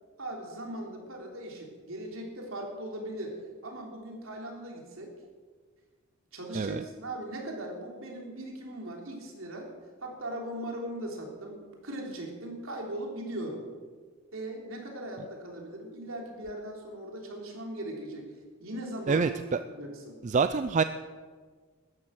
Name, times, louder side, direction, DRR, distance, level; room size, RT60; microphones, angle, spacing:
voice 1, 0.2-5.1 6.3-9.7 10.0-13.7 14.3-18.3 18.6-19.3 19.7-20.2, right 1 dB, 75° right, 0 dB, 3.4 m, -39 dB
voice 2, 19.1-19.6 20.2-20.8, right 5 dB, 35° right, 11 dB, 0.4 m, -26 dB
13.0 x 11.0 x 7.6 m, 1.5 s
head